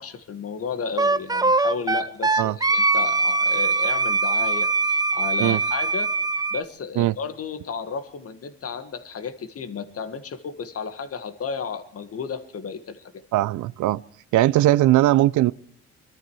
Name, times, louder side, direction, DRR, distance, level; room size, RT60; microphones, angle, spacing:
voice 1, 0.0-6.1 6.5-13.1, left 6 dB, 50° left, 1.6 m, -33 dB
Wind instrument woodwind instrument, 1.0-6.6, right 3 dB, 15° right, 0.6 m, -22 dB
voice 2, 13.3-14.0 14.3-15.5, right 15 dB, 80° right, 0.6 m, -19 dB
22.0 x 13.5 x 4.7 m
cardioid pair, 90°, 30 cm